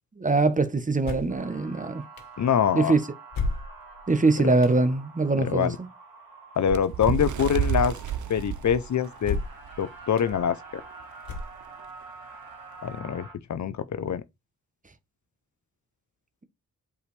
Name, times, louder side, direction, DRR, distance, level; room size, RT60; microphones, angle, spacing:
voice 1, 0.2-2.0 2.7-3.0 4.1-5.7, right 3 dB, 25° right, 1.0 m, -23 dB
sound 1, 1.0-1.4 2.2-2.3 3.3-4.0 4.6-4.8 7.0-7.4 8.1-8.2 9.2-9.7 10.2-10.3 11.2-11.8, left 3 dB, 85° left, 1.4 m, -32 dB
sound 2, 1.3-13.3, right 3 dB, 80° right, 2.5 m, -47 dB
voice 2, 2.4-3.0 4.4-4.5 5.4-5.8 6.6-7.9 8.3-9.4 9.8-10.6 12.8-14.2, left 8 dB, 55° left, 0.7 m, -25 dB
Bird, 6.7-9.8 10.3-10.5 10.8-11.0 11.8-11.9, right 10 dB, 60° right, 0.7 m, -30 dB
7.9 x 4.8 x 3.4 m
cardioid pair, 90°, 34 cm